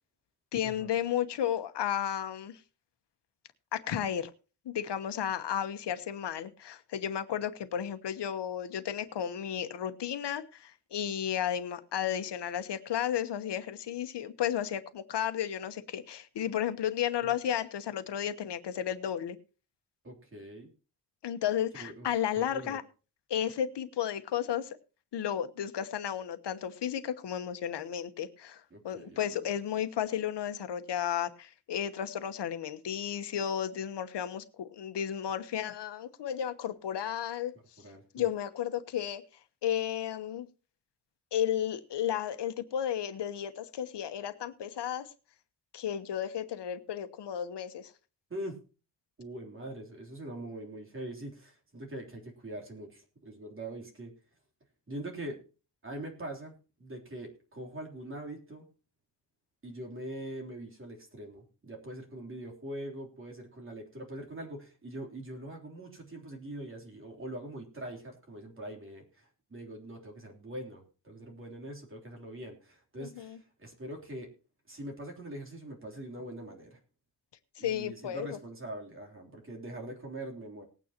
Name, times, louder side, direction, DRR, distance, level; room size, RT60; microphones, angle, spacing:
voice 1, 0.5-2.6 3.7-4.3 4.6-19.4 21.2-22.8 23.3-24.8 25.1-37.5 38.1-39.2 39.6-40.5 41.3-45.1 45.7-47.9 73.0-73.4 77.6-78.4, left 10 dB, 75° left, 1.1 m, -33 dB
voice 2, 20.0-20.7 21.8-22.1 22.4-22.8 28.7-29.4 37.8-38.3 48.3-48.6 49.2-54.1 54.9-55.4 55.8-56.5 56.8-58.7 59.6-74.3 74.7-76.8 77.6-80.6, right 1 dB, 30° right, 3.4 m, -43 dB
19.5 x 9.2 x 2.9 m
wide cardioid pair, 165°, 41 cm